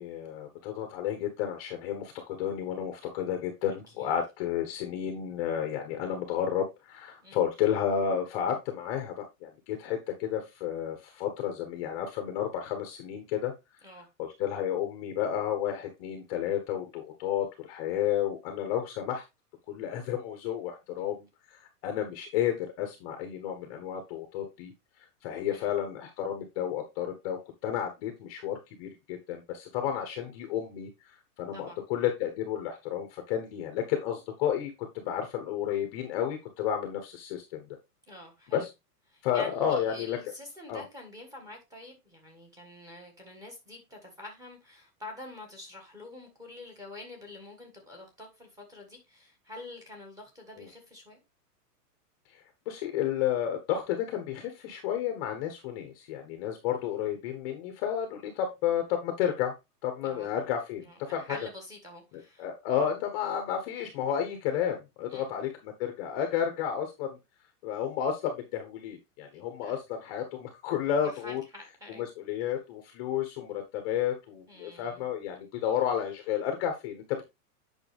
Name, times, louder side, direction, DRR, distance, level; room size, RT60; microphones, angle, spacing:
voice 1, 0.0-9.1 9.4-13.5 14.2-19.2 19.7-24.7 25.2-37.6 38.5-38.7 39.2-40.2 40.7-40.8 50.6-50.7 52.3-59.5 59.8-61.4 62.1-67.2 67.6-71.4 71.9-77.2, left 9 dB, 20° left, 1.0 m, -32 dB
voice 2, 38.1-38.7 39.1-51.2 60.0-60.3 60.8-62.5 65.1-65.3 69.6-69.7 71.0-72.1 74.5-75.1 75.4-75.5, left 2 dB, 5° right, 1.5 m, -47 dB
8.8 x 5.7 x 3.4 m
supercardioid pair, 175°, 47 cm